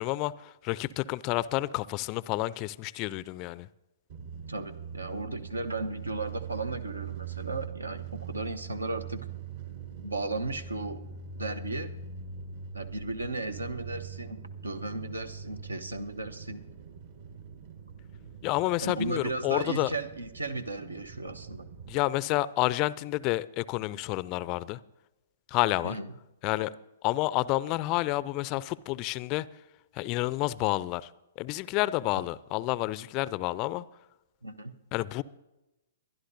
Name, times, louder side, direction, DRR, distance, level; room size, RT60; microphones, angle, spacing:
voice 1, 0.0-3.7 18.4-19.9 21.9-24.8 25.5-26.0 26.4-26.7 27.0-29.5 29.9-31.1 31.4-33.9 34.9-35.2, left 18 dB, 35° left, 0.4 m, -29 dB
sound 1, 4.1-22.0, right 6 dB, 50° right, 1.2 m, -42 dB
voice 2, 4.5-9.2 10.0-11.0 11.4-12.0 12.7-16.6 18.8-21.7 25.8-26.1 32.2-32.3 34.4-34.7, right 2 dB, 80° right, 0.8 m, -35 dB
22.5 x 11.5 x 2.7 m
figure-of-eight pair, 115°, 0 cm